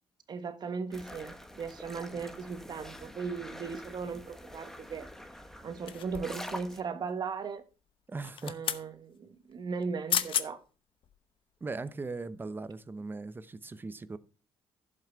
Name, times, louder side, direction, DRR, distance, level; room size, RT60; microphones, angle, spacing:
voice 1, 0.3-5.1 5.6-7.6 8.4-10.6, right 5 dB, 45° right, 1.4 m, -37 dB
sound 1, 0.9-6.8, left 1 dB, 5° left, 1.4 m, -46 dB
sound 2, 5.9-6.5 8.2-8.9 9.8-9.9 10.1-10.5 11.0-11.2, left 9 dB, 60° left, 0.9 m, -32 dB
voice 2, 8.1-8.6 11.6-14.2, right 3 dB, 20° right, 0.7 m, -39 dB
11.5 x 7.5 x 4.6 m
cardioid pair, 120°, 10 cm